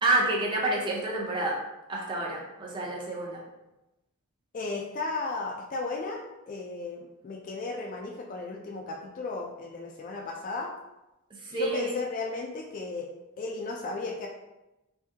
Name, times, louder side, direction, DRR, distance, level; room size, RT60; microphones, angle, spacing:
voice 1, 0.0-1.6 1.9-3.4 11.4-12.0, right 2 dB, 20° right, -3 dB, 0.5 m, -28 dB
voice 2, 4.5-10.7 11.5-13.1 13.4-14.3, left 3 dB, 35° left, 0 dB, 0.3 m, -35 dB
3.5 x 2.6 x 2.7 m, 0.96 s
head